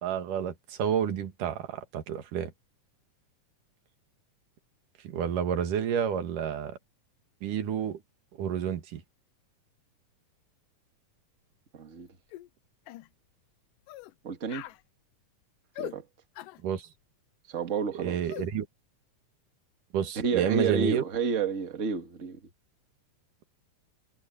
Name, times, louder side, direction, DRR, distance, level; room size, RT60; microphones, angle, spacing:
voice 1, 0.0-2.5 5.0-6.8 7.4-8.0 8.4-9.0 16.6-16.9 17.9-18.7 19.9-21.0, right 8 dB, 75° right, 3.3 m, -30 dB
voice 2, 11.7-12.1 14.2-14.6 15.8-16.0 17.5-18.2 20.1-22.4, right 5 dB, 30° right, 1.5 m, -30 dB
sound 1, 12.3-12.5 12.9-13.1 13.9-14.1 14.5-14.8 15.8-16.0 16.4-16.6 18.3-18.5, left 16 dB, 85° left, 2.3 m, -41 dB
omnidirectional pair, 3.8 m